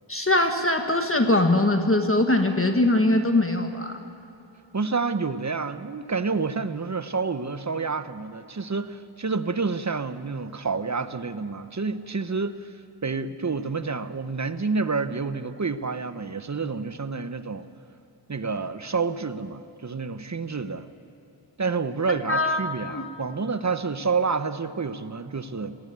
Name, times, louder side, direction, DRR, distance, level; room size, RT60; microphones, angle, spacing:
voice 1, 0.1-4.0 22.1-23.0, left 2 dB, 30° left, 5 dB, 1.5 m, -22 dB
voice 2, 4.7-12.6 13.0-17.7 18.3-20.9 21.6-25.8, right 4 dB, 35° right, 11 dB, 1.0 m, -29 dB
19.5 x 15.0 x 9.4 m, 2.9 s
cardioid pair, 45°, 46 cm